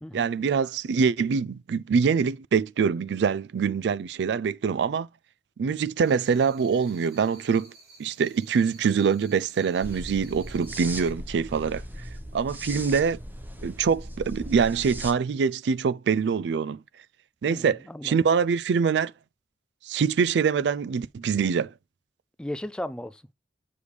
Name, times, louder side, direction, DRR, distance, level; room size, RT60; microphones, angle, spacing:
voice 1, 0.1-5.1 5.6-7.7 8.0-11.8 12.3-13.2 13.6-16.8 17.4-19.1 19.8-21.7, right 6 dB, 80° right, 0.3 m, -24 dB
sound 1, 6.0-11.1, right 3 dB, 60° right, 2.8 m, -52 dB
sound 2, 9.8-15.1, equal, 10° right, 0.8 m, -38 dB
voice 2, 17.5-18.2 22.4-23.3, left 1 dB, 5° left, 0.3 m, -36 dB
6.6 x 5.0 x 3.2 m
head